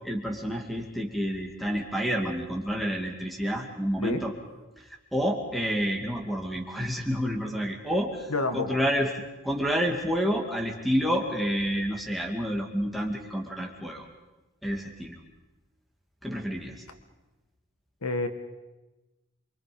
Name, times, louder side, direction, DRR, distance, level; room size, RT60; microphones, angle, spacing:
voice 1, 0.0-4.3 5.1-8.3 8.5-9.1 9.4-14.0 14.6-15.1 16.2-16.7, equal, ahead, 2 dB, 2.3 m, -29 dB
voice 2, 8.3-8.8 18.0-18.3, left 2 dB, 80° left, 8 dB, 1.6 m, -28 dB
28.0 x 24.0 x 5.3 m, 1.1 s
head